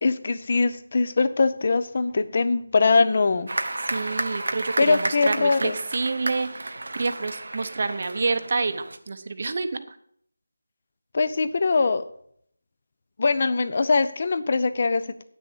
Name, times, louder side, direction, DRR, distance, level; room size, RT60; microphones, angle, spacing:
voice 1, 0.0-3.5 4.8-5.8 11.1-12.0 13.2-15.2, left 4 dB, 30° left, 12 dB, 0.6 m, -22 dB
sound 1, 3.5-9.0, right 2 dB, 65° right, 0.9 m, -32 dB
voice 2, 3.9-9.9, right 4 dB, 35° right, 10 dB, 0.7 m, -28 dB
8.9 x 6.3 x 7.1 m, 0.65 s
figure-of-eight pair, 175°, 0 cm